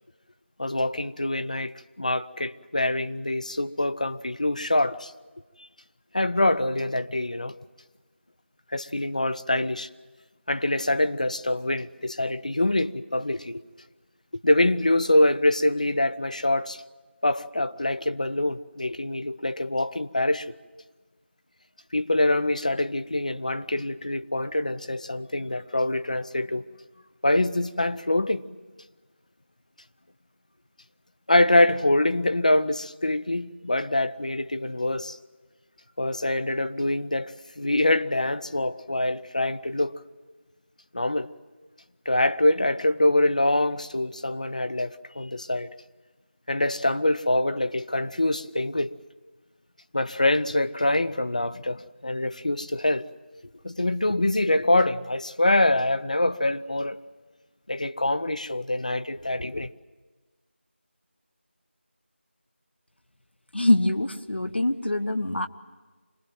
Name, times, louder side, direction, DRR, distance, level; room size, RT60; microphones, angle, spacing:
voice 1, 0.6-5.1 6.1-7.5 8.7-9.9 10.5-13.6 14.4-16.8 17.2-20.6 21.9-26.6 27.2-28.5 31.3-35.2 36.0-39.9 40.9-41.3 42.1-45.7 46.5-48.9 49.9-53.1 53.6-57.0 57.7-59.7, left 1 dB, 35° left, 0.7 m, -25 dB
voice 2, 63.5-65.5, left 2 dB, 60° left, 1.3 m, -24 dB
26.0 x 19.5 x 9.1 m
figure-of-eight pair, 175°, 7 cm